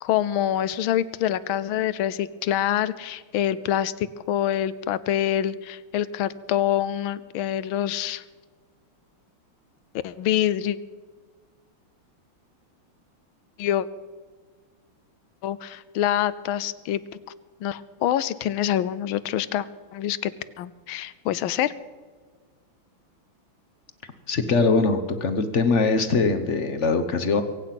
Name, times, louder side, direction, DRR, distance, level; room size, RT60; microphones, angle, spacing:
voice 1, 0.0-8.2 10.0-10.8 13.6-13.9 15.4-17.2 17.6-19.7 19.9-20.3 20.6-21.7, left 11 dB, 80° left, 17 dB, 1.4 m, -26 dB
voice 2, 24.3-27.4, left 4 dB, 45° left, 10 dB, 1.0 m, -22 dB
23.0 x 8.7 x 5.8 m, 1.5 s
omnidirectional pair, 2.3 m